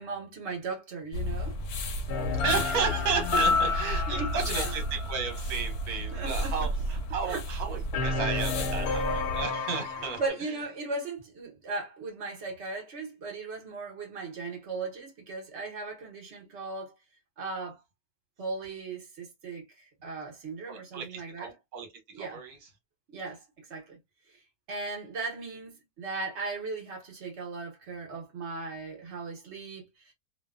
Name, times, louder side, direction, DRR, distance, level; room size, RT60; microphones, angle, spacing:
voice 1, 0.0-1.6 3.5-3.6 4.1-4.7 6.1-6.5 7.3-7.4 10.2-16.9 17.4-17.8 18.4-21.5 22.1-22.4 23.1-23.4 23.7-24.0 24.3-24.4 24.7-30.1, right 3 dB, 50° right, 1.3 m, -37 dB
sound 1, 1.1-9.4, equal, 65° left, 0.9 m, -33 dB
sound 2, 2.1-5.7 7.9-10.3, left 4 dB, 90° left, 1.2 m, -30 dB
voice 2, 2.4-10.6 20.7-21.9 22.2-22.7, right 6 dB, 80° right, 1.4 m, -33 dB
2.9 x 2.2 x 2.3 m
omnidirectional pair, 1.6 m